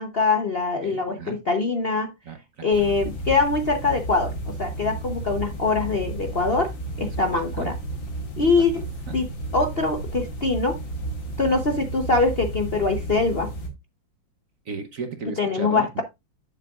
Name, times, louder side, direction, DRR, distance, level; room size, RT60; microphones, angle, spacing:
voice 1, 0.0-2.1 2.6-6.7 7.0-7.7 8.4-8.9 9.1-9.3 9.5-10.8 11.4-13.5 15.4-16.0, left 3 dB, 45° left, 0.8 m, -23 dB
voice 2, 0.8-1.4 2.3-2.7 7.0-7.1 7.6-7.7 9.1-9.2 14.7-16.0, right 4 dB, 50° right, 1.1 m, -35 dB
sound 1, 2.7-13.7, right 2 dB, 75° left, 3.0 m, -33 dB
9.8 x 7.5 x 2.4 m
omnidirectional pair, 2.1 m